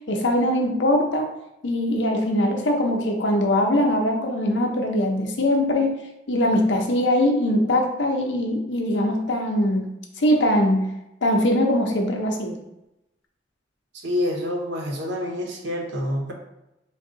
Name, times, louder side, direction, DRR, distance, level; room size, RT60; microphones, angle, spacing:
voice 1, 0.1-1.3 1.6-6.0 6.3-10.9 11.2-12.6, left 1 dB, 80° left, 2 dB, 0.7 m, -22 dB
voice 2, 14.0-16.3, left 1 dB, 85° right, 1 dB, 0.8 m, -27 dB
3.5 x 2.3 x 3.7 m, 0.90 s
head